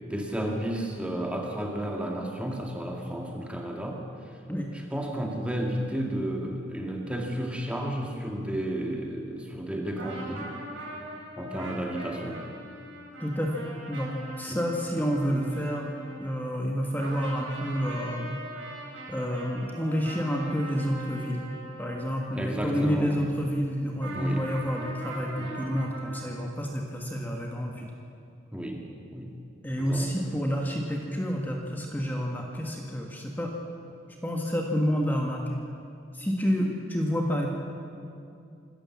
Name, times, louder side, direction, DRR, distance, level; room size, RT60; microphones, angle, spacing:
voice 1, 0.1-4.0 4.9-10.5 11.4-12.5 14.5-14.6 22.3-23.3 24.1-24.5 25.3-25.6 28.5-29.4 29.8-30.2, right 1 dB, 5° right, 1 dB, 1.9 m, -32 dB
sound 1, 10.0-16.7 17.0-22.9 24.0-26.4, right 1 dB, 85° right, 6.3 m, -41 dB
voice 2, 13.2-15.9 16.2-18.4 19.1-21.5 21.8-27.9 29.6-33.6 34.2-35.6 36.1-37.5, equal, 10° left, 0 dB, 1.7 m, -29 dB
26.0 x 14.0 x 7.3 m, 2.5 s
head